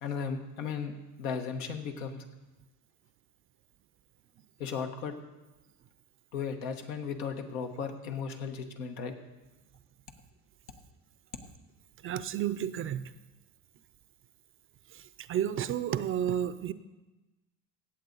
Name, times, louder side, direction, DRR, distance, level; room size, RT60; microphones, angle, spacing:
voice 1, 0.0-2.2 4.6-5.2 6.3-9.2, left 6 dB, 85° left, 5 dB, 1.3 m, -36 dB
voice 2, 12.0-13.1 15.3-16.7, right 10 dB, 35° right, 15 dB, 0.4 m, -31 dB
17.0 x 7.5 x 4.0 m, 1.1 s
supercardioid pair, 95°, 40 cm